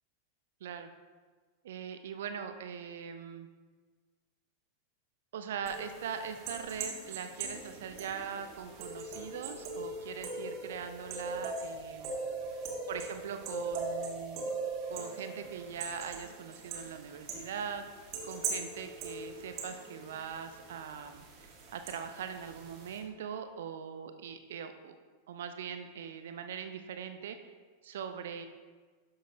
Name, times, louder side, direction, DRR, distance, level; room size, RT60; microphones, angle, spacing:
voice 1, 1.6-3.5 5.3-12.2 12.9-14.5 14.9-17.8 18.2-21.2 21.7-24.9 25.3-27.5 27.8-28.5, right 7 dB, 60° right, 8 dB, 0.6 m, -41 dB
sound 1, 5.7-23.0, right 3 dB, 40° right, 1.7 m, -41 dB
12.0 x 6.6 x 2.7 m, 1.5 s
figure-of-eight pair, 90°, 0 cm